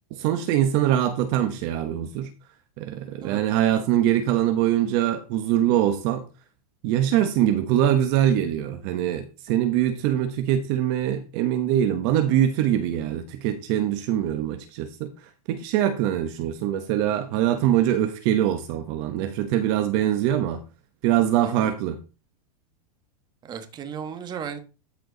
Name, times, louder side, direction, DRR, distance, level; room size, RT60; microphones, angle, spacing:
voice 1, 0.1-2.3 2.8-6.2 6.8-15.1 15.5-20.6 21.0-22.0, right 11 dB, 40° right, 9 dB, 1.0 m, -23 dB
voice 2, 21.4-21.7 23.4-24.6, right 7 dB, 20° right, 10 dB, 1.3 m, -35 dB
13.0 x 4.6 x 3.9 m, 0.32 s
supercardioid pair, 150°, 20 cm